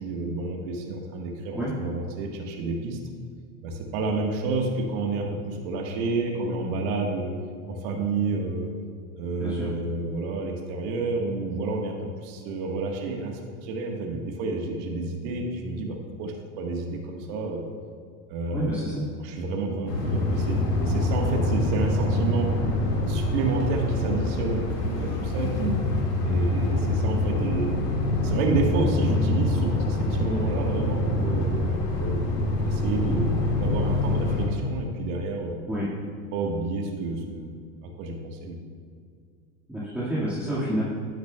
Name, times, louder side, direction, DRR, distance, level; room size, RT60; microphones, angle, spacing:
voice 1, 0.0-3.0 3.6-7.3 7.7-8.7 9.2-17.6 18.3-18.8 19.2-22.6 23.1-25.8 26.2-27.7 28.2-32.3 32.7-35.5 36.3-37.5 37.8-38.6, right 3 dB, 55° right, 2 dB, 1.4 m, -29 dB
voice 2, 18.5-19.0 35.7-35.9 39.7-40.8, right 1 dB, 5° right, -10 dB, 1.8 m, -29 dB
sound 1, 19.9-34.5, left 2 dB, 85° left, 2.0 m, -25 dB
11.5 x 9.3 x 2.3 m, 2.1 s
hypercardioid pair, 100°, 47 cm